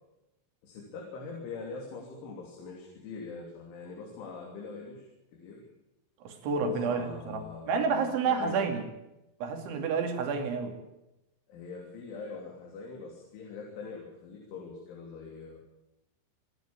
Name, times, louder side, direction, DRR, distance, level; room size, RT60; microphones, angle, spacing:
voice 1, 0.6-5.7 6.5-8.6 11.5-15.6, left 4 dB, 80° left, -1 dB, 5.7 m, -43 dB
voice 2, 6.2-7.4 7.7-8.8 9.4-10.7, right 5 dB, 80° right, 5 dB, 5.0 m, -29 dB
28.5 x 10.5 x 8.8 m, 0.91 s
omnidirectional pair, 5.4 m